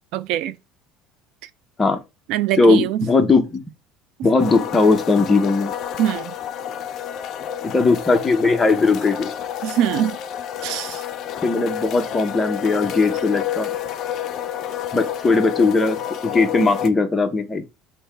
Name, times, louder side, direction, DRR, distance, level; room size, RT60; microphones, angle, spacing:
voice 1, 0.1-0.6 2.3-3.0 6.0-6.3 9.6-10.2 10.6-11.0, right 12 dB, 60° right, 0.4 m, -23 dB
voice 2, 2.6-3.6 4.2-5.7 7.7-9.3 11.4-13.7 14.9-17.7, left 3 dB, 15° left, 0.7 m, -18 dB
sound 1, 4.4-16.9, left 10 dB, 45° left, 0.4 m, -29 dB
5.5 x 2.1 x 4.4 m
cardioid pair, 150°, 0 cm